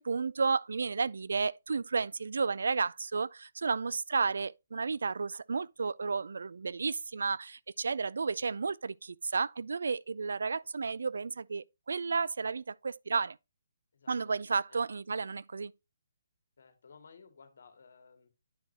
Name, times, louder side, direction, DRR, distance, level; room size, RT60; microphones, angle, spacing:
voice 1, 0.0-13.4 14.1-15.7, right 4 dB, 75° right, 0.3 m, -32 dB
voice 2, 16.6-18.3, left 5 dB, 65° left, 2.1 m, -57 dB
9.6 x 5.9 x 2.9 m
hypercardioid pair, 150°, 0 cm